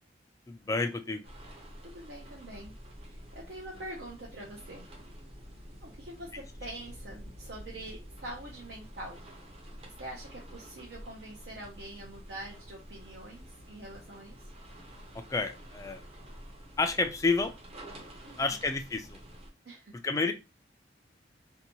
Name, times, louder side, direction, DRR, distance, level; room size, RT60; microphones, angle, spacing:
voice 1, 0.5-1.2 15.1-16.0 16.8-17.5 18.4-19.2 20.0-20.3, left 3 dB, 20° left, 7 dB, 0.3 m, -30 dB
sound 1, 1.2-19.5, equal, 35° right, 0.7 m, -49 dB
voice 2, 1.8-2.7 3.0-4.9 5.8-9.2 9.8-14.4 18.2-18.6 19.6-19.9, right 1 dB, 70° right, -2 dB, 0.6 m, -45 dB
2.7 x 2.2 x 2.9 m, 0.28 s
head